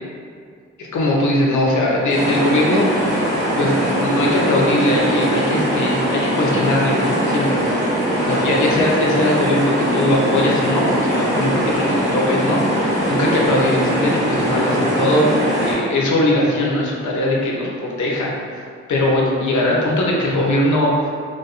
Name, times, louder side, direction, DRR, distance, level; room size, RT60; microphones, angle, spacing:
voice 1, 0.9-3.2 3.6-7.6 8.2-18.5 18.9-21.1, left 1 dB, 70° left, -3 dB, 0.6 m, -20 dB
sound 1, 2.1-15.7, equal, 85° right, 0.8 m, -21 dB
2.5 x 2.2 x 2.4 m, 2.2 s
supercardioid pair, 40°, 31 cm